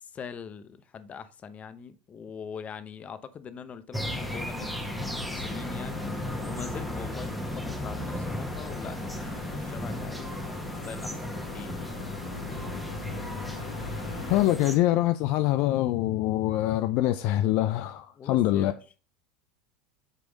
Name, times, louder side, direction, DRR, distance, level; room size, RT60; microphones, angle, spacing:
voice 1, 0.0-6.0 6.4-11.8 12.4-13.0 18.2-18.8, left 6 dB, 30° left, 0.8 m, -43 dB
sound 1, 3.9-14.8, equal, ahead, 1.3 m, -36 dB
sound 2, 4.0-14.4, left 3 dB, 85° left, 2.0 m, -39 dB
voice 2, 14.3-18.7, left 14 dB, 60° left, 0.4 m, -24 dB
8.3 x 3.5 x 3.9 m
hypercardioid pair, 95°, 4 cm